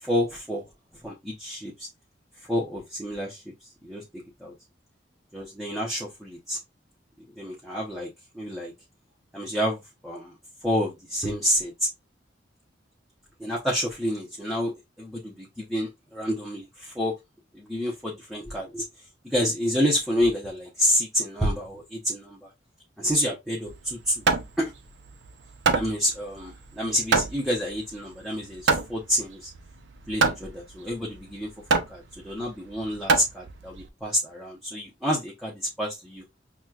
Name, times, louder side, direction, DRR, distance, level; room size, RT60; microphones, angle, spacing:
voice 1, 0.0-0.6 1.0-1.9 2.5-3.5 3.8-4.5 5.3-6.6 7.4-8.7 9.3-10.3 10.6-11.9 13.4-17.1 17.5-18.8 19.2-22.5 23.0-24.2 24.6-24.7 25.7-29.5 30.1-31.5 31.9-36.2, equal, ahead, 0.7 m, -29 dB
Hammer, 23.7-33.9, right 4 dB, 75° right, 0.6 m, -27 dB
5.9 x 2.2 x 2.4 m
head